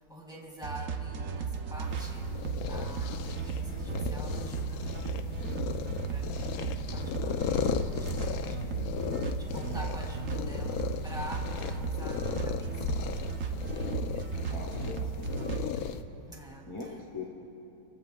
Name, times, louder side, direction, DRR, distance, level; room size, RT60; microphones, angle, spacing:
voice 1, 0.1-2.2 2.7-8.8 9.4-13.0 16.3-16.7, equal, ahead, -2 dB, 1.8 m, -46 dB
sound 1, 0.6-15.7, right 6 dB, 65° right, 0.7 m, -35 dB
sound 2, 1.9-16.0, left 7 dB, 80° left, 0.8 m, -36 dB
voice 2, 14.1-15.7 16.6-17.3, left 3 dB, 20° left, -2 dB, 1.0 m, -42 dB
29.5 x 15.5 x 2.3 m, 2.9 s
omnidirectional pair, 2.2 m